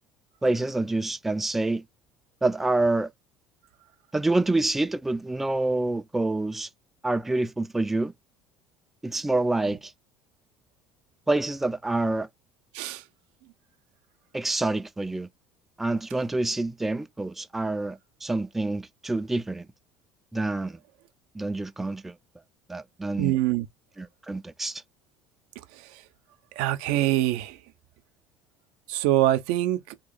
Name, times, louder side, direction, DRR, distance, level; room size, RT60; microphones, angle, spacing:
voice 1, 0.4-1.8 2.4-3.1 4.1-6.7 7.0-8.1 9.0-9.9 11.3-12.3 14.3-15.3 15.8-19.7 20.3-20.8 21.3-22.1 22.7-23.3 24.0-24.8, right 2 dB, 10° right, 0.4 m, -27 dB
voice 2, 23.2-23.7 26.6-27.6 28.9-29.8, right 14 dB, 80° right, 0.5 m, -24 dB
2.9 x 2.8 x 3.9 m
supercardioid pair, 95°, 2 cm